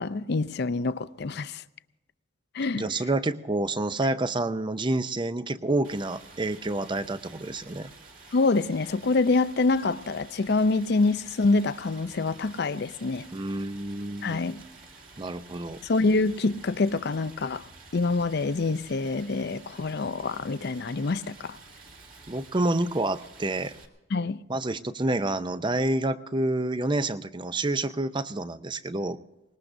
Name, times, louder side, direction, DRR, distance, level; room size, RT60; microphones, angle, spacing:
voice 1, 0.0-1.6 2.5-2.9 8.3-13.3 14.2-14.6 15.8-17.7 17.9-21.6 24.1-24.4, left 3 dB, 55° left, 0.5 m, -26 dB
voice 2, 2.7-7.9 13.3-14.4 15.2-15.8 22.3-23.7 24.5-29.2, right 2 dB, 25° right, 0.5 m, -28 dB
Stream, 5.8-23.9, right 3 dB, 45° right, 2.2 m, -50 dB
24.0 x 20.0 x 2.6 m
head